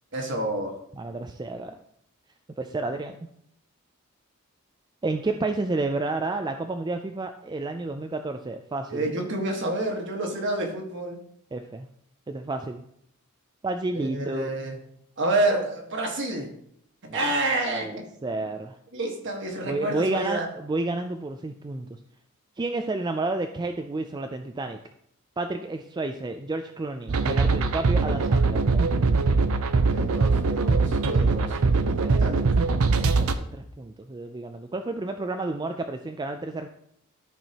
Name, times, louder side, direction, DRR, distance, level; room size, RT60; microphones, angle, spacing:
voice 1, 0.1-0.8 8.9-11.2 13.9-14.8 15.2-16.5 17.1-18.0 18.9-20.5 29.9-32.4, right 1 dB, 55° right, 2 dB, 1.5 m, -29 dB
voice 2, 0.9-1.8 2.6-3.2 5.0-9.1 11.5-11.9 12.3-12.8 13.6-14.5 17.1-17.3 17.6-18.8 19.7-22.0 22.6-24.8 25.4-28.9 32.0-32.3 33.0-36.7, right 2 dB, 20° right, 6 dB, 0.3 m, -31 dB
sound 1, 27.1-33.3, right 3 dB, 70° right, 0.6 m, -22 dB
13.0 x 4.5 x 2.9 m, 0.71 s
head